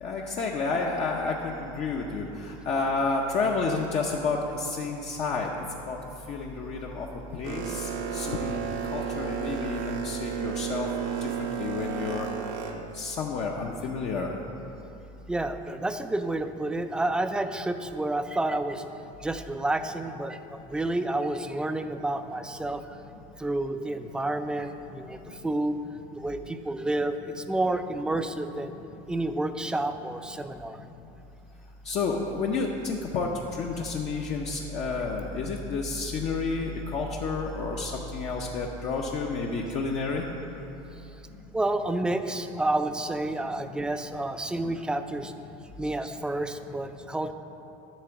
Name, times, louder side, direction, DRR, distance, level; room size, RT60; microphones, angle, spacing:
voice 1, 0.0-2.2 2.7-5.5 5.9-6.0 6.3-7.1 7.3-7.9 8.1-8.6 8.9-10.9 11.2-11.3 11.6-12.3 13.0-14.3 31.9-33.3 33.6-40.3, left 4 dB, 45° left, 0 dB, 0.7 m, -30 dB
Boat Water vehicle, 7.4-12.7, right 7 dB, 85° right, 1.0 m, -32 dB
voice 2, 15.3-18.8 19.2-20.4 20.7-22.8 23.4-25.8 26.2-28.7 29.1-30.8 41.5-45.3 45.8-47.3, right 2 dB, 5° right, 9 dB, 0.3 m, -29 dB
11.0 x 3.8 x 7.0 m, 2.9 s
cardioid pair, 135°, 16 cm